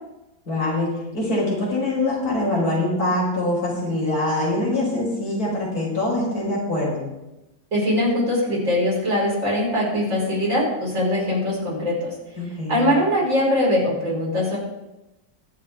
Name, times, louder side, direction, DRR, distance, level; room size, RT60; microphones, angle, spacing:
voice 1, 0.5-7.1 12.4-12.9, left 2 dB, 70° left, -5 dB, 5.6 m, -24 dB
voice 2, 7.7-12.2 12.7-14.6, left 1 dB, 55° right, -5 dB, 5.6 m, -22 dB
22.0 x 7.7 x 3.6 m, 0.97 s
omnidirectional pair, 1.6 m